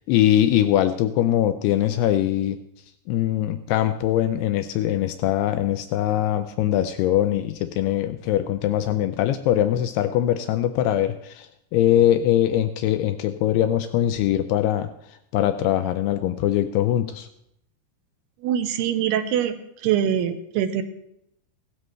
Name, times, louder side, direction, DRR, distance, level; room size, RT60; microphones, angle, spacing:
voice 1, 0.1-2.6 3.1-17.3, left 12 dB, 80° left, 10 dB, 2.5 m, -22 dB
voice 2, 18.4-19.6 19.8-20.8, right 9 dB, 85° right, 9 dB, 2.7 m, -23 dB
17.0 x 13.0 x 3.2 m, 0.78 s
omnidirectional pair, 4.8 m